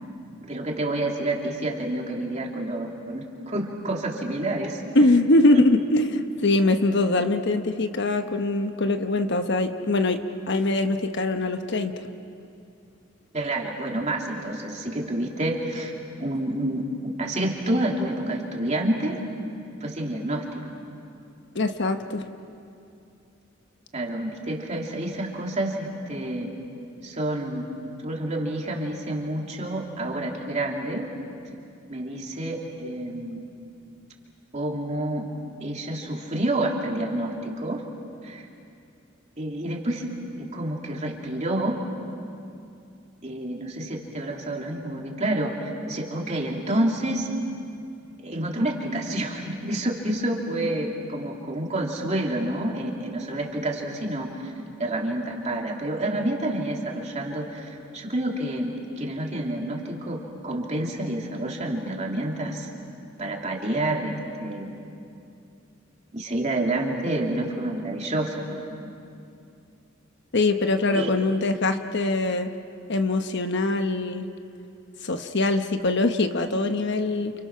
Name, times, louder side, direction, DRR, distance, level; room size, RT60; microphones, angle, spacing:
voice 1, 0.4-4.8 13.3-15.9 16.2-19.2 19.8-20.6 23.9-26.5 27.0-27.7 28.0-31.1 31.9-33.5 34.5-35.3 35.6-37.8 38.2-38.4 39.4-40.1 40.4-41.8 43.2-47.3 48.2-54.5 54.8-62.7 63.2-64.1 64.4-64.7 66.1-68.9 70.9-71.1, right 1 dB, 35° right, 0 dB, 3.0 m, -28 dB
voice 2, 4.9-10.2 10.5-11.9 21.5-22.3 70.3-72.5 72.9-74.3 75.0-77.3, left 2 dB, 60° left, 7 dB, 1.2 m, -22 dB
29.5 x 29.0 x 6.2 m, 2.5 s
head